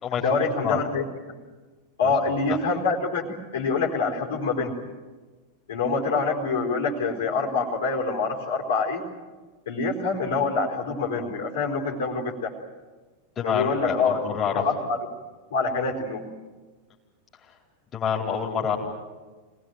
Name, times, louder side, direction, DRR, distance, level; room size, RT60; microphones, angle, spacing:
voice 1, 0.2-1.0 2.0-4.7 5.7-9.0 9.7-12.5 13.4-14.2 14.5-15.0 15.5-16.2, left 4 dB, 60° left, 0 dB, 4.5 m, -25 dB
voice 2, 2.3-2.6 13.4-14.6 17.9-18.8, left 7 dB, 25° left, -1 dB, 4.4 m, -27 dB
26.5 x 20.0 x 9.4 m, 1.3 s
figure-of-eight pair, 90°, 0 cm